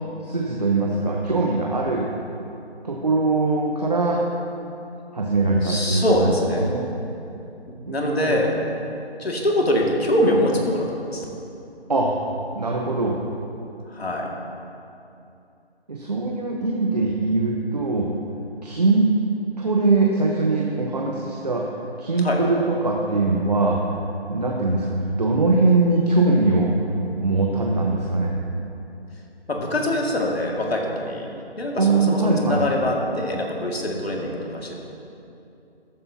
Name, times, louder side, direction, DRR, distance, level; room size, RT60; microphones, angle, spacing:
voice 1, 0.2-2.1 2.8-4.2 5.1-6.9 7.9-8.4 11.9-12.2 12.5-13.2 15.9-18.1 18.6-19.1 19.6-21.6 22.0-23.8 24.3-26.7 27.2-28.3 31.8-32.7, right 3 dB, 40° right, -1 dB, 0.9 m, -21 dB
voice 2, 5.6-6.7 7.7-8.5 9.2-11.3 13.9-14.3 22.2-22.4 29.5-34.8, left 1 dB, 70° left, -1 dB, 2.1 m, -24 dB
14.5 x 11.5 x 2.8 m, 2.7 s
figure-of-eight pair, 175°, 32 cm